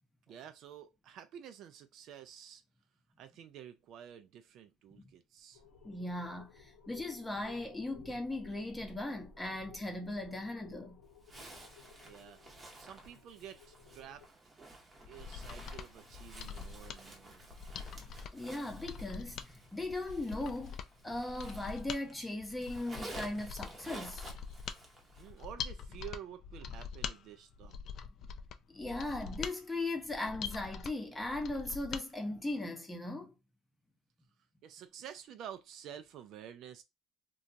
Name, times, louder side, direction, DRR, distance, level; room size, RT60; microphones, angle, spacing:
voice 1, 0.3-2.6 3.2-5.6 12.0-12.4 12.8-14.3 15.1-17.4 25.2-27.8 34.6-36.8, right 10 dB, 60° right, 0.4 m, -50 dB
sound 1, 5.5-14.3, left 4 dB, 90° left, 0.8 m, -57 dB
voice 2, 5.8-11.0 18.3-20.8 21.0-24.3 28.7-33.4, left 2 dB, 10° left, 0.7 m, -38 dB
Zipper (clothing), 11.2-22.1 22.4-25.4, right 2 dB, 25° right, 0.8 m, -52 dB
Mechanisms, 15.0-32.1 32.4-32.5, left 6 dB, 50° left, 0.3 m, -44 dB
2.8 x 2.3 x 2.5 m
cardioid pair, 115°, 0 cm